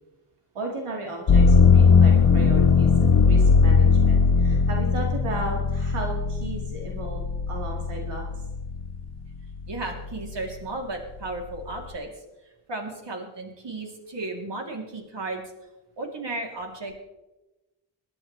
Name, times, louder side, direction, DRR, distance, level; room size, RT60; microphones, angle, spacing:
voice 1, 0.5-8.4, right 2 dB, 90° right, 0 dB, 2.2 m, -35 dB
sound 1, 1.3-9.1 9.6-10.4, left 5 dB, 70° left, 1.4 m, -19 dB
voice 2, 9.7-12.2 12.7-15.4 16.0-16.9, right 2 dB, 55° right, 1 dB, 3.1 m, -34 dB
22.5 x 11.0 x 3.3 m, 1.0 s
wide cardioid pair, 90°, 50 cm